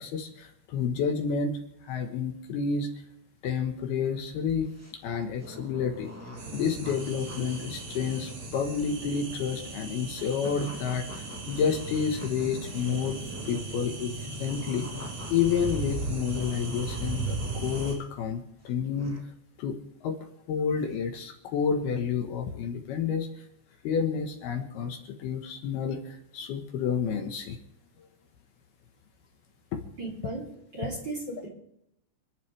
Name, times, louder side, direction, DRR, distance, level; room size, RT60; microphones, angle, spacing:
voice 1, 0.0-2.9 3.4-6.1 6.5-13.2 13.4-14.9 15.3-19.2 19.6-19.8 20.0-20.2 20.5-23.3 23.8-27.6 29.7-29.8, left 6 dB, 70° left, 4 dB, 2.9 m, -30 dB
sound 1, 4.0-13.8 14.3-18.2 18.6-19.2, equal, 5° right, 1.1 m, -45 dB
sound 2, 6.4-18.0, right 3 dB, 65° right, 6.3 m, -37 dB
voice 2, 30.0-30.5 30.7-31.5, right 2 dB, 25° right, -2 dB, 3.2 m, -35 dB
29.0 x 11.0 x 3.4 m, 0.80 s
omnidirectional pair, 5.1 m